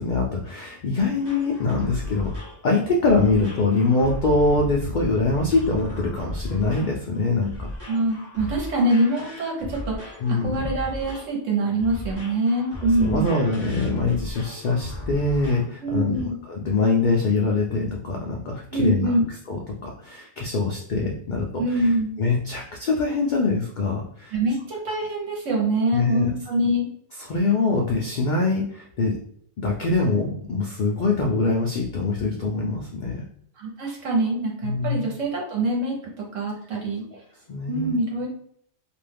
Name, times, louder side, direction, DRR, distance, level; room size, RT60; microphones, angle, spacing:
voice 1, 0.0-2.3 2.6-7.5 10.2-10.7 13.0-16.2 16.5-19.1 19.5-21.9 22.2-24.3 25.9-26.3 27.2-29.2 29.6-33.2 34.6-35.1 37.5-37.9, left 3 dB, 65° left, -1 dB, 0.4 m, -23 dB
sound 1, 1.2-15.7 16.1-16.2, left 1 dB, 20° right, 0.9 m, -35 dB
voice 2, 7.9-13.3 15.8-16.4 18.7-19.2 21.6-22.2 24.3-26.8 33.6-37.0 37.7-38.3, right 1 dB, 75° right, -2 dB, 1.3 m, -24 dB
2.6 x 2.2 x 3.3 m, 0.65 s
omnidirectional pair, 1.3 m